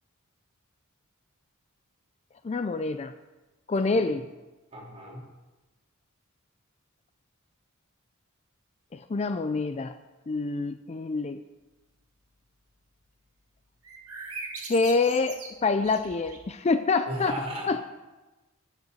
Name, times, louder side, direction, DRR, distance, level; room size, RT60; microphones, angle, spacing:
voice 1, 2.4-3.1 3.7-4.3 8.9-10.0 10.3-11.4 14.7-17.3 17.7-17.8, left 3 dB, 30° left, 10 dB, 0.4 m, -26 dB
voice 2, 4.7-5.2 17.1-17.8, equal, 30° right, -3 dB, 3.2 m, -36 dB
sound 1, 13.8-16.6, right 4 dB, 80° right, 2.1 m, -41 dB
9.1 x 7.5 x 8.2 m, 1.1 s
head